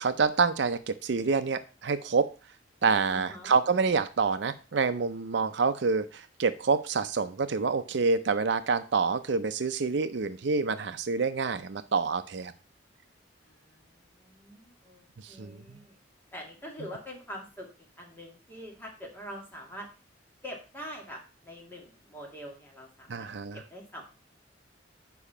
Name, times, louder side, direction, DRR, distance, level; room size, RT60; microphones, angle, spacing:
voice 1, 0.0-2.3 2.8-12.5 15.2-15.6 23.1-23.6, right 4 dB, 65° right, 11 dB, 0.5 m, -27 dB
voice 2, 3.1-3.5 13.4-16.0 16.3-17.7 18.0-19.9 20.4-23.3 23.5-24.0, equal, 10° left, -1 dB, 2.1 m, -44 dB
6.9 x 5.0 x 5.5 m, 0.33 s
head